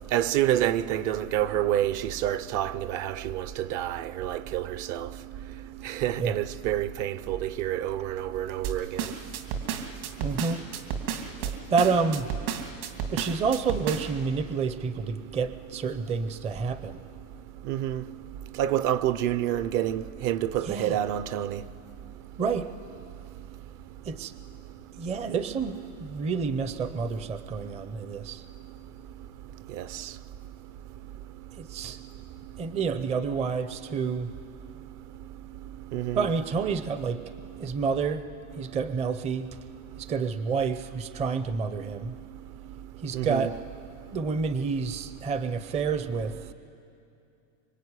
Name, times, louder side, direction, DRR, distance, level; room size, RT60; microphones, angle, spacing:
voice 1, 0.1-5.1 5.8-9.1 17.6-18.0 18.5-21.6 29.7-30.1 35.9-36.3 43.1-43.5, right 12 dB, 45° right, 0.8 m, -28 dB
sound 1, 8.6-14.2, right 8 dB, 65° right, 3.0 m, -32 dB
voice 2, 10.2-10.6 11.4-12.3 13.1-17.0 20.6-21.0 22.4-22.7 24.1-24.3 25.0-28.4 31.6-32.0 32.6-34.3 36.1-37.2 37.6-38.2 38.6-39.5 40.0-42.2 43.0-43.6 44.1-46.4, right 5 dB, 15° right, 0.6 m, -29 dB
25.5 x 24.0 x 9.8 m
supercardioid pair, 155°, 41 cm